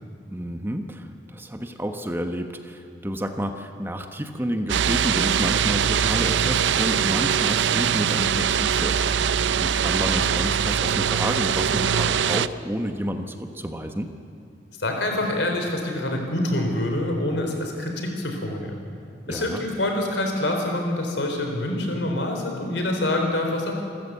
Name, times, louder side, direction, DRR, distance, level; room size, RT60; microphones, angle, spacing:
voice 1, 0.3-14.1 19.3-19.6, equal, 10° right, 6 dB, 1.1 m, -30 dB
sound 1, 4.7-12.5, right 7 dB, 85° right, 0.5 m, -22 dB
voice 2, 14.8-18.7 19.3-23.8, left 1 dB, 80° left, 3 dB, 4.1 m, -26 dB
27.5 x 14.0 x 8.2 m, 2.3 s
head